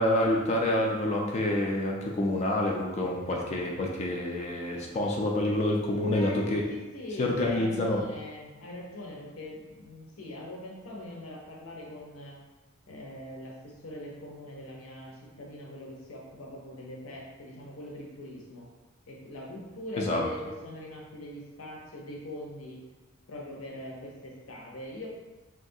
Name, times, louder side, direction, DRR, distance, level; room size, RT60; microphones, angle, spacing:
voice 1, 0.0-6.6 7.2-8.0 20.0-20.2, left 1 dB, 35° left, -1 dB, 0.3 m, -27 dB
voice 2, 6.0-12.4 12.9-18.7 19.1-22.8 23.3-25.1, left 1 dB, 90° left, -2 dB, 0.7 m, -42 dB
3.5 x 2.3 x 2.6 m, 1.2 s
head